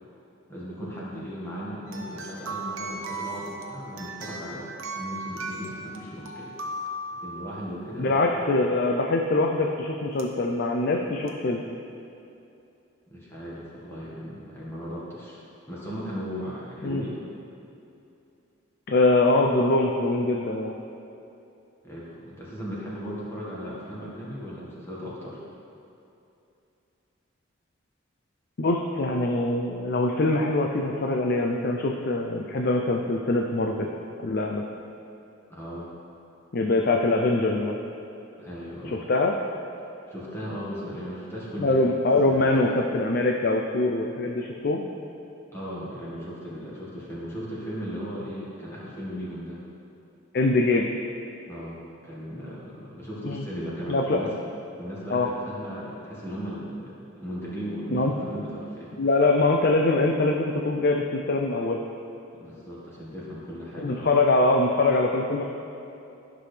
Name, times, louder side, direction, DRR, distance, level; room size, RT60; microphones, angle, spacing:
voice 1, 0.5-6.5 7.2-8.3 13.1-15.4 15.7-17.2 21.8-25.4 35.5-35.9 38.4-39.0 40.1-41.8 42.2-42.7 45.5-49.6 51.5-54.3 54.8-59.1 62.3-64.1, equal, 15° left, -7 dB, 1.6 m, -37 dB
sound 1, 1.9-7.8 10.2-10.3 11.3-11.4, right 2 dB, 85° right, 0.8 m, -37 dB
voice 2, 8.0-11.6 16.8-17.0 18.9-20.7 28.6-33.9 34.2-34.6 36.5-37.8 39.1-39.3 41.6-44.8 50.3-50.9 53.2-53.4 53.9-54.3 55.1-55.3 57.9-58.1 59.0-61.8 63.8-65.4, left 2 dB, 50° left, 1 dB, 0.5 m, -23 dB
12.5 x 6.1 x 3.3 m, 2.7 s
head